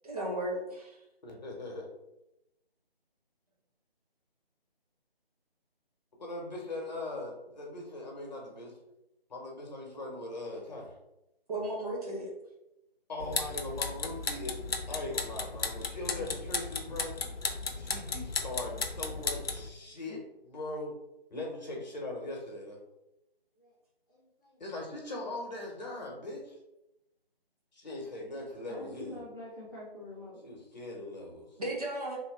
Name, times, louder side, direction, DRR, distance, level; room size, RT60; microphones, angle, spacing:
voice 1, 0.0-1.0 11.5-12.3 31.6-32.2, right 1 dB, 40° right, -3 dB, 1.1 m, -35 dB
voice 2, 1.2-1.9 6.2-8.7 9.3-10.9 13.1-17.2 17.7-20.2 20.5-20.9 21.3-22.8 24.6-26.5 27.7-29.2 30.4-31.5, left 2 dB, 45° left, -1 dB, 1.2 m, -40 dB
sound 1, 13.2-19.7, left 4 dB, 70° left, 0.7 m, -35 dB
voice 3, 19.8-20.2 23.6-23.7 24.1-24.6 28.6-30.4, left 1 dB, 20° left, -10 dB, 0.8 m, -47 dB
3.2 x 2.9 x 3.6 m, 0.89 s
figure-of-eight pair, 165°, 30 cm